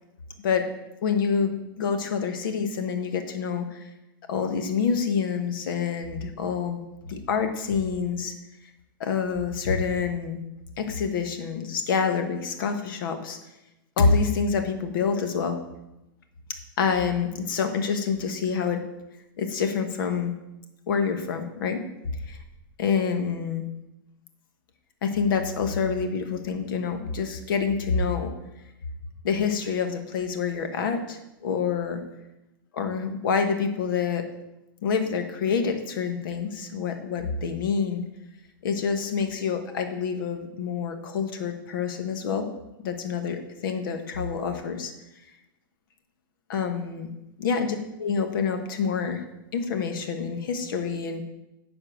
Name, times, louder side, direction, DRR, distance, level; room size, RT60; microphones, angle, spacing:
voice 1, 1.0-3.8 4.3-6.8 7.1-8.3 9.0-10.4 10.8-13.4 14.0-15.6 16.8-18.8 19.4-20.3 20.9-21.8 22.3-22.4 22.8-23.6 25.0-28.3 29.2-32.0 32.7-34.2 34.8-38.0 38.6-42.5 42.8-44.9 46.5-47.1 47.4-49.2 49.5-51.2, left 5 dB, 70° left, 7 dB, 1.4 m, -27 dB
10.0 x 4.3 x 6.3 m, 0.93 s
supercardioid pair, 140°, 12 cm